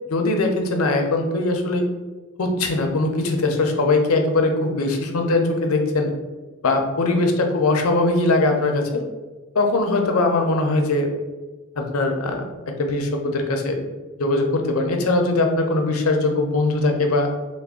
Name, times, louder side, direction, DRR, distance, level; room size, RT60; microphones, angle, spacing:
voice 1, 0.1-1.9 2.4-6.1 6.6-9.0 9.5-11.1 11.8-12.4 12.8-13.8 14.2-17.3, left 2 dB, 90° left, 3 dB, 0.6 m, -21 dB
3.3 x 2.2 x 3.6 m, 1.2 s
head